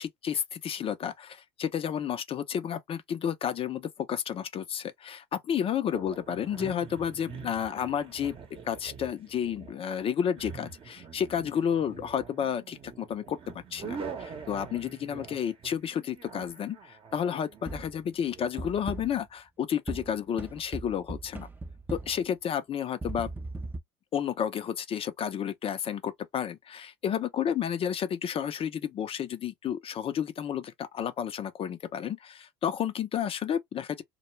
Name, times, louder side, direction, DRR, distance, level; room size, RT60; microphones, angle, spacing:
voice 1, 0.0-8.4 8.6-21.5 21.9-23.3 24.1-34.0, left 8 dB, 35° left, 0.5 m, -31 dB
sound 1, 5.9-18.6, right 6 dB, 35° right, 0.8 m, -45 dB
sound 2, 17.7-18.1 18.6-19.3 19.9-22.3 23.0-23.8, right 2 dB, 10° right, 0.5 m, -38 dB
2.1 x 2.1 x 3.0 m
hypercardioid pair, 85°, 16 cm